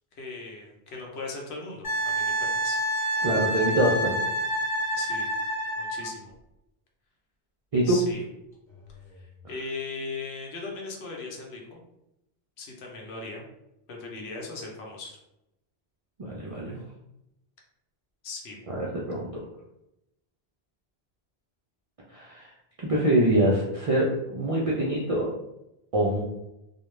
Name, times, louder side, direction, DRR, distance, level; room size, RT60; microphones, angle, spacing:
voice 1, 0.2-3.3 4.9-5.3 5.8-6.3 7.8-8.2 9.2-11.8 12.6-13.4 13.9-15.2 18.2-18.6, left 3 dB, 80° left, 0 dB, 0.9 m, -38 dB
Wind instrument woodwind instrument, 1.8-6.1 8.8-8.9, right 1 dB, 5° left, 1.0 m, -28 dB
voice 2, 3.2-4.2 7.7-8.0 16.2-16.8 18.7-19.3 22.1-22.5 22.8-25.3 25.9-26.2, right 1 dB, 60° right, -4 dB, 0.3 m, -24 dB
2.3 x 2.1 x 3.0 m, 0.86 s
omnidirectional pair, 1.1 m